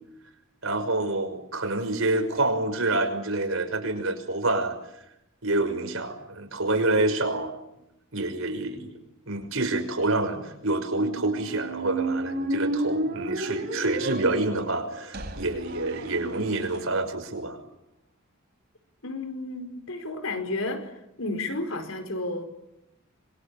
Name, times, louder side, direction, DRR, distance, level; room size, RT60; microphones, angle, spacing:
voice 1, 0.6-4.8 5.4-7.5 8.1-8.9 9.3-17.6, right 2 dB, 70° right, 7 dB, 5.9 m, -27 dB
Squeak, 10.8-16.8, right 1 dB, 50° right, 4.6 m, -32 dB
voice 2, 19.0-22.4, left 2 dB, 75° left, 9 dB, 4.8 m, -32 dB
27.0 x 25.0 x 8.6 m, 0.86 s
head